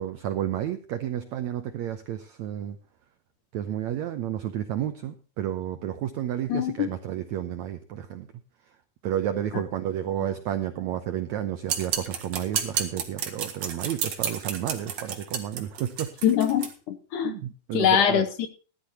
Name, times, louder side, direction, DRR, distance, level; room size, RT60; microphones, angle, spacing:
voice 1, 0.0-2.8 3.5-8.3 9.0-16.1 17.2-18.2, right 11 dB, 80° right, 9 dB, 1.6 m, -31 dB
voice 2, 6.5-6.9 16.2-17.3 17.7-18.5, left 9 dB, 70° left, 9 dB, 2.0 m, -23 dB
sound 1, 11.7-16.7, right 7 dB, 50° right, 2.5 m, -31 dB
18.5 x 12.0 x 2.9 m, 0.37 s
omnidirectional pair, 4.3 m